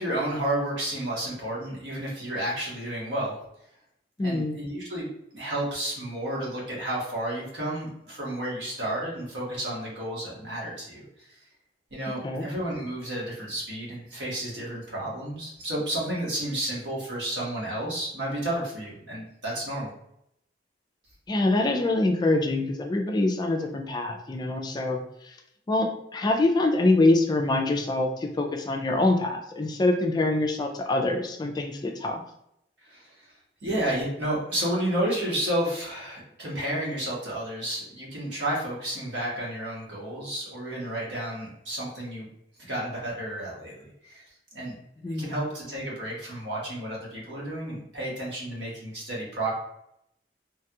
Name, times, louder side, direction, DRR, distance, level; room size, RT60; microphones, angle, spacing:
voice 1, 0.0-3.4 4.2-5.1 5.3-11.0 11.9-19.9 32.9-33.3 33.6-42.3 42.6-44.2 44.5-44.7 45.1-49.5, right 1 dB, 85° right, -4 dB, 1.2 m, -31 dB
voice 2, 4.2-4.6 12.2-12.5 21.3-25.4 25.7-32.2 45.0-45.3, left 2 dB, 25° left, 3 dB, 0.3 m, -25 dB
3.2 x 2.3 x 2.8 m, 0.77 s
head